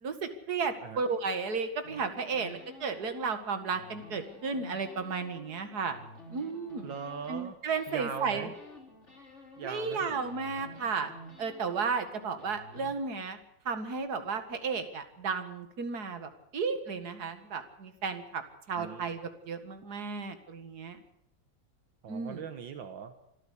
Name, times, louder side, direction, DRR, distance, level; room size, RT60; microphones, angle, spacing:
voice 1, 0.0-6.0 6.3-6.9 7.3-8.5 9.6-11.1 11.4-13.4 13.7-18.4 18.7-21.0 22.1-22.4, right 5 dB, 55° right, 8 dB, 2.5 m, -33 dB
sound 1, 1.8-7.5 7.8-9.9 10.2-12.9, equal, 35° left, 3.7 m, -51 dB
voice 2, 6.8-7.6 7.9-8.5 9.6-10.2 18.8-19.1 22.0-23.1, right 6 dB, 75° right, 8 dB, 2.0 m, -40 dB
26.0 x 13.5 x 8.4 m, 0.76 s
omnidirectional pair, 2.1 m